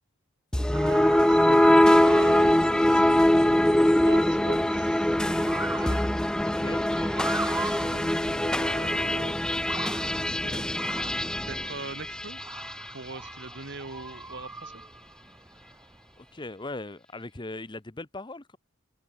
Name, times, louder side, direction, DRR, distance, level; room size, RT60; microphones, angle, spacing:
sound 1, 0.5-12.8, left 1 dB, 5° left, 0.3 m, -23 dB
Motor vehicle (road) / Siren, 0.7-16.3, right 3 dB, 15° right, 1.3 m, -41 dB
voice 1, 0.7-6.1 7.6-9.5 9.9-10.7 11.4-12.4 12.9-14.8, right 3 dB, 60° right, 1.7 m, -42 dB
voice 2, 1.5-2.3 6.6-6.9 16.2-18.6, left 2 dB, 25° left, 1.0 m, -39 dB
head